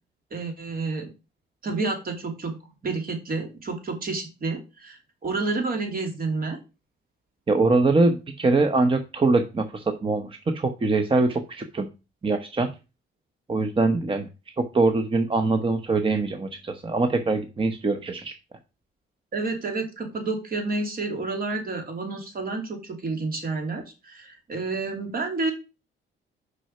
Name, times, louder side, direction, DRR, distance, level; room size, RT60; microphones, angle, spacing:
voice 1, 0.3-1.1 1.6-2.6 2.8-6.6 19.3-25.5, right 3 dB, 45° right, 3 dB, 2.9 m, -30 dB
voice 2, 7.5-11.9 12.2-12.7 13.5-14.3 14.6-18.3, right 3 dB, 25° right, 7 dB, 1.0 m, -23 dB
6.2 x 5.6 x 5.7 m, 0.30 s
cardioid pair, 90°, 20 cm